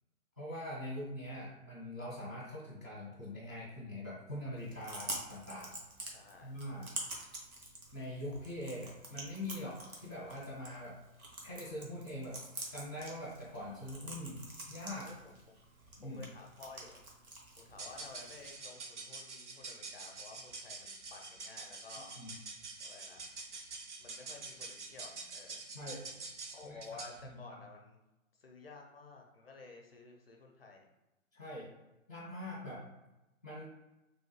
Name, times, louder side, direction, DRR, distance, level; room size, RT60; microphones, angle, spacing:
voice 1, 0.4-5.8 6.4-6.9 7.9-11.0 11.4-12.4 12.7-15.1 16.0-16.3 22.2-22.3 25.7-26.1 26.6-26.8 27.2-27.3 31.3-31.7 32.1-32.8 33.4-33.6, left 1 dB, 15° right, -11 dB, 0.4 m, -43 dB
Chewing mastication, 4.6-18.6, right 1 dB, 80° right, 1.0 m, -48 dB
voice 2, 6.0-6.6 15.0-15.6 16.0-17.0 17.6-22.2 22.8-23.3 24.0-25.6 26.5-28.0 28.4-30.9, left 3 dB, 45° left, 1 dB, 0.5 m, -53 dB
sound 1, 17.7-27.2, right 3 dB, 55° right, 0.6 m, -47 dB
3.0 x 2.4 x 3.0 m, 0.98 s
figure-of-eight pair, 130°, 42 cm